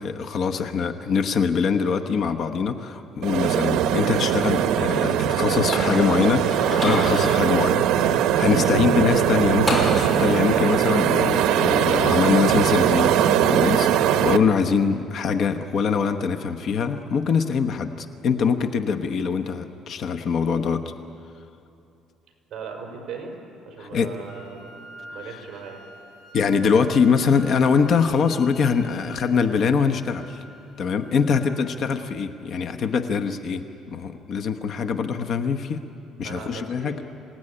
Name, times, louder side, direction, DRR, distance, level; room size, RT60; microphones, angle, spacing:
voice 1, 0.0-20.8 23.8-24.1 26.3-30.4 30.8-35.8 36.2-36.9, left 6 dB, 45° left, 7 dB, 1.0 m, -23 dB
sound 1, 3.2-14.4, right 10 dB, 75° right, 1.0 m, -21 dB
sound 2, 5.7-7.0 9.7-10.6, equal, 10° left, 5.5 m, -28 dB
voice 2, 22.5-23.3 23.7-24.8 25.1-25.8 36.2-37.0, right 5 dB, 40° right, 1 dB, 5.5 m, -38 dB
Wind instrument woodwind instrument, 24.2-32.2, left 1 dB, 90° left, 2.5 m, -46 dB
27.0 x 17.0 x 10.0 m, 2.8 s
cardioid pair, 160°, 0 cm